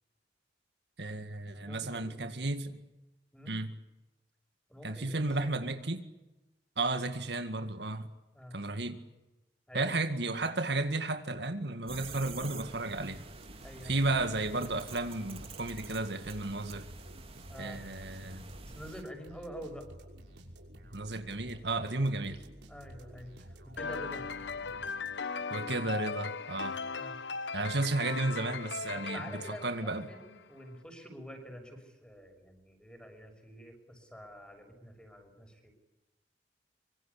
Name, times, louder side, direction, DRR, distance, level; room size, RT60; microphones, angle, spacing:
voice 1, 1.0-2.8 3.5-3.7 4.8-6.0 6.8-8.1 8.5-9.0 9.7-13.2 13.8-16.8 17.6-18.4 20.9-22.4 25.5-26.8 27.5-30.1, right 2 dB, 70° right, 8 dB, 2.1 m, -33 dB
voice 2, 1.6-2.5 3.3-3.6 4.7-5.6 8.3-8.6 9.7-9.9 13.6-14.0 17.5-17.8 18.6-19.9 22.7-24.2 26.9-27.2 28.9-35.7, equal, 5° left, 4 dB, 6.7 m, -47 dB
sound 1, 11.9-19.0, right 3 dB, 35° right, 2.9 m, -48 dB
sound 2, 13.2-25.5, right 1 dB, 90° right, 6.1 m, -52 dB
sound 3, 23.8-30.4, left 5 dB, 90° left, 1.0 m, -38 dB
25.0 x 25.0 x 8.5 m, 1.0 s
head